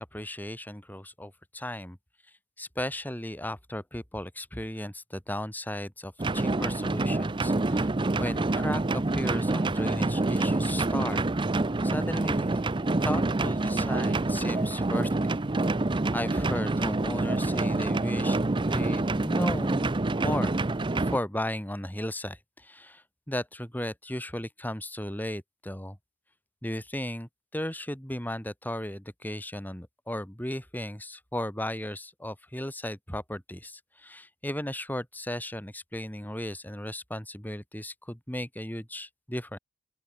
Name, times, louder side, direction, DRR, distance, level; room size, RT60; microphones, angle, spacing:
voice 1, 0.0-2.0 2.6-11.2 11.8-12.6 13.1-15.3 16.1-19.9 20.2-20.6 20.9-26.0 26.6-39.6, left 1 dB, 10° left, 5.2 m, -35 dB
sound 1, 6.2-21.2, right 2 dB, 25° right, 0.6 m, -27 dB
open air
head